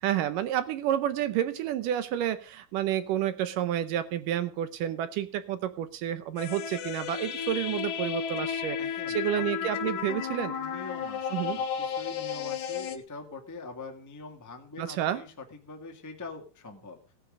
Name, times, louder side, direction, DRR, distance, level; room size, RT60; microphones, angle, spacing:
voice 1, 0.0-8.8 9.1-10.6 11.3-11.6 14.8-15.2, right 11 dB, 75° right, 12 dB, 2.1 m, -30 dB
sound 1, 6.4-13.0, left 8 dB, 65° left, 2.8 m, -33 dB
voice 2, 8.8-10.2 10.6-17.1, left 3 dB, 10° left, 3 dB, 1.1 m, -44 dB
17.0 x 9.9 x 5.2 m, 0.37 s
omnidirectional pair, 4.5 m